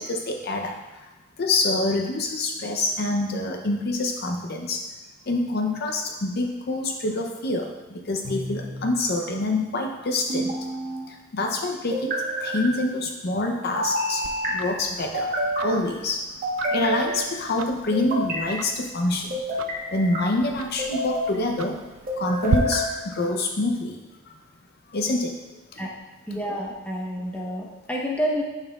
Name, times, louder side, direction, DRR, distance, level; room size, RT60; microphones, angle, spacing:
voice 1, 0.0-4.9 5.3-10.6 11.1-16.3 16.7-19.4 19.9-21.8 22.2-24.0 24.3-24.4 24.9-25.3 25.7-25.8, left 2 dB, 50° left, 3 dB, 0.6 m, -26 dB
sound 1, 8.2-8.9 10.3-11.1 11.9-12.7 13.8-14.5 15.1-15.8 16.4-17.3 17.9-18.6 19.3-20.2 20.8-21.4 22.1-22.9, equal, 45° right, 1.5 m, -28 dB
Tick-tock, 14.2-22.6, right 6 dB, 75° right, 0.4 m, -36 dB
voice 2, 26.3-28.4, equal, 5° left, -3 dB, 0.9 m, -29 dB
10.5 x 5.7 x 2.3 m, 1.1 s
head